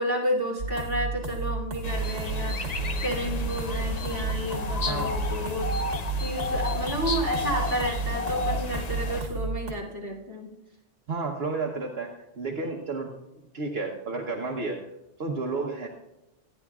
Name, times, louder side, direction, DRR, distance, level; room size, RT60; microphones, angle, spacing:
voice 1, 0.0-5.7 6.2-10.5, equal, 20° right, -2 dB, 2.8 m, -31 dB
sound 1, 0.6-9.7, right 3 dB, 75° right, 1.6 m, -32 dB
sound 2, 1.8-9.2, left 3 dB, 40° left, 0.8 m, -32 dB
voice 2, 4.8-5.2 11.1-13.1 13.5-14.8 15.2-15.9, right 3 dB, 60° right, 0 dB, 1.3 m, -31 dB
25.0 x 9.9 x 2.4 m, 0.93 s
omnidirectional pair, 1.2 m